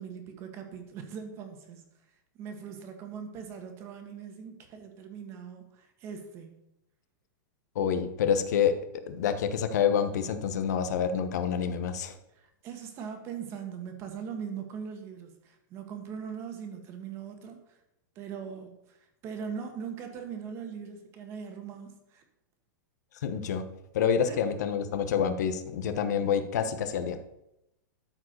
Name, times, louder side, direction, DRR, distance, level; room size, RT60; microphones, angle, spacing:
voice 1, 0.0-1.8 2.4-6.6 12.3-17.8 18.1-22.2 24.3-24.4, right 7 dB, 25° right, 5 dB, 1.4 m, -41 dB
voice 2, 7.7-12.1 23.2-23.6 23.9-27.2, left 7 dB, 60° left, 9 dB, 1.0 m, -27 dB
12.5 x 4.8 x 6.5 m, 0.86 s
supercardioid pair, 170°, 11 cm